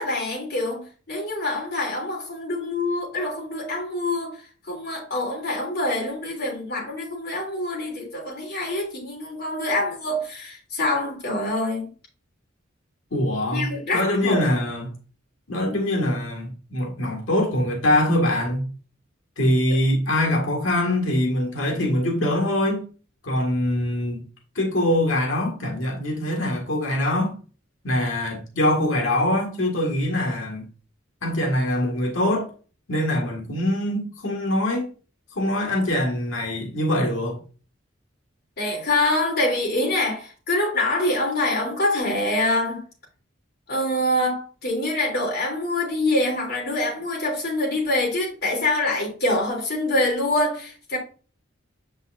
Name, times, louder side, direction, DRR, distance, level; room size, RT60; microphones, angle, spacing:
voice 1, 0.0-11.9 13.5-14.4 19.7-19.8 38.6-42.8 43.7-51.0, left 1 dB, 55° left, 3.2 m, -25 dB
voice 2, 13.1-14.9 15.5-18.7 19.4-22.9 23.2-24.2 24.6-27.4 27.8-30.6 31.2-32.5 32.9-34.9 35.3-37.4, left 1 dB, 80° left, 1.8 m, -23 dB
7.3 x 5.6 x 2.5 m
head